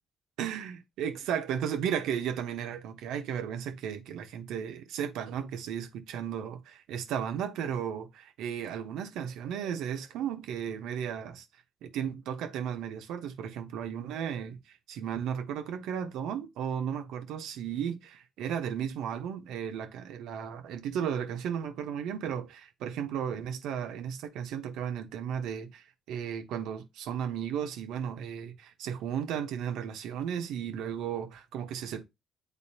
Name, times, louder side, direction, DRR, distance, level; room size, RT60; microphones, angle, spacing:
voice 1, 0.4-11.4 11.8-14.6 14.9-32.0, right 8 dB, 80° right, 1.1 m, -34 dB
9.1 x 3.9 x 2.8 m
supercardioid pair, 70°, 0 cm